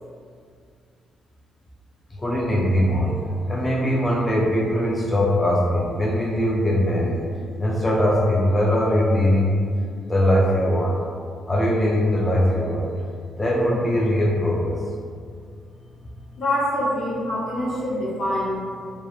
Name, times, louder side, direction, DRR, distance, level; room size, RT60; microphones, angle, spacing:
voice 1, 2.1-7.3 7.6-9.6 10.1-11.0 11.4-12.9 13.4-14.8, equal, 15° left, -5 dB, 0.3 m, -21 dB
voice 2, 16.4-18.6, left 1 dB, 60° left, -7 dB, 0.8 m, -25 dB
2.2 x 2.0 x 3.0 m, 2.2 s
cardioid pair, 90°, 0 cm